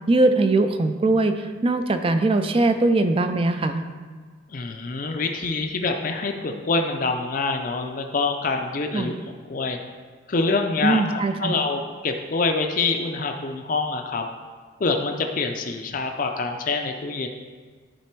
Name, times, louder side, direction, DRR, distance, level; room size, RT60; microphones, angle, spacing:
voice 1, 0.1-1.4 1.6-3.8 8.9-9.1 10.8-11.5, right 2 dB, 25° right, 8 dB, 0.3 m, -20 dB
voice 2, 4.5-9.2 9.5-9.8 10.3-14.3 14.8-17.3, left 3 dB, 40° left, 4 dB, 0.4 m, -26 dB
10.5 x 4.1 x 4.5 m, 1.5 s
head